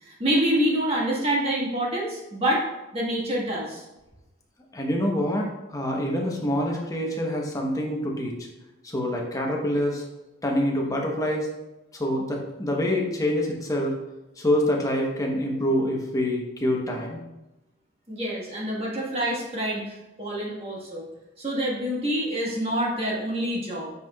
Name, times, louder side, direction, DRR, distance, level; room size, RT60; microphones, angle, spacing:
voice 1, 0.0-2.6 2.9-3.8 18.1-21.1 21.4-23.9, right 1 dB, 30° right, -3 dB, 1.6 m, -26 dB
voice 2, 4.7-8.3 8.8-10.0 10.4-11.5 11.9-13.9 14.4-17.2, left 1 dB, 15° left, 0 dB, 0.9 m, -26 dB
8.0 x 5.4 x 2.4 m, 1.0 s
head